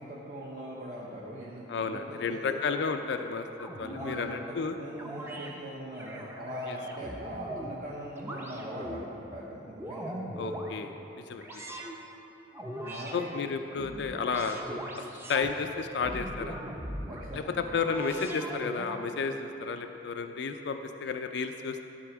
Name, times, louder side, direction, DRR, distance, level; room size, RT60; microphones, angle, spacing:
voice 1, 0.0-2.6 3.9-9.6 9.9-10.1 12.8-13.3 17.1-17.6, equal, 45° right, -6 dB, 0.9 m, -41 dB
voice 2, 1.7-4.8 6.7-6.8 10.4-10.9 11.3-11.6 13.1-14.6 15.0-15.1 15.3-16.6 17.3-21.8, left 5 dB, 65° left, 7 dB, 0.4 m, -32 dB
sound 1, 3.6-4.3 5.0-5.5 5.9-7.8 8.2-9.1 9.6-10.7 11.4-12.0 12.5-13.2 13.7-15.5 16.0-17.3 17.8-19.0, equal, 10° right, 0.7 m, -40 dB
12.5 x 4.2 x 6.0 m, 3.0 s
head